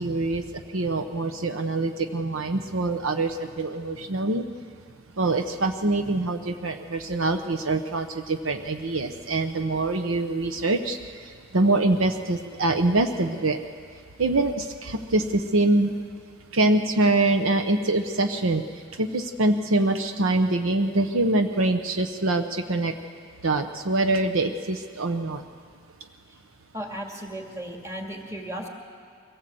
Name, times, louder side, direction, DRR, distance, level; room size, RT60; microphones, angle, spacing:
voice 1, 0.0-4.5 5.2-13.6 14.2-16.1 16.5-18.6 18.9-22.9 23.4-25.4, right 2 dB, 75° right, 7 dB, 0.9 m, -24 dB
voice 2, 26.7-28.7, right 1 dB, 15° right, 1 dB, 2.3 m, -35 dB
23.5 x 17.5 x 7.8 m, 2.1 s
head